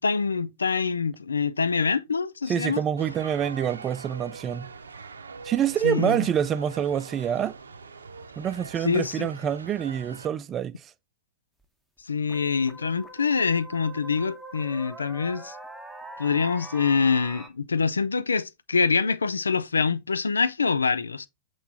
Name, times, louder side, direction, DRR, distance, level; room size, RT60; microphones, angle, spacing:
voice 1, 0.0-2.8 5.8-6.3 8.8-9.3 12.0-15.6 16.2-21.3, left 5 dB, 75° left, 0.4 m, -25 dB
voice 2, 2.5-4.7 5.4-7.5 8.4-10.8, right 9 dB, 25° right, 0.5 m, -26 dB
sound 1, 3.0-10.3, right 4 dB, 75° right, 0.7 m, -42 dB
sound 2, 11.6-11.7 12.3-17.5, right 1 dB, ahead, 1.0 m, -43 dB
7.9 x 3.1 x 3.8 m
figure-of-eight pair, 90°, 0 cm